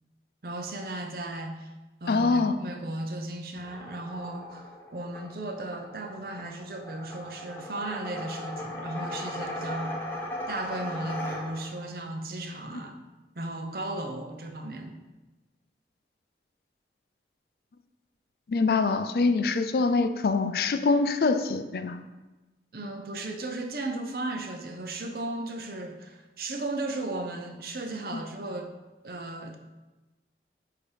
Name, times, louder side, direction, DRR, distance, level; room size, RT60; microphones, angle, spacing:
voice 1, 0.4-1.7 2.0-10.0 10.5-13.0 13.4-15.0 22.7-28.7 29.0-29.6, right 2 dB, 55° right, 5 dB, 0.7 m, -35 dB
voice 2, 2.1-2.5 18.5-22.0, left 4 dB, 60° left, 10 dB, 0.4 m, -24 dB
sound 1, 3.6-11.9, left 1 dB, 10° left, 0.9 m, -38 dB
8.3 x 2.9 x 4.9 m, 1.1 s
head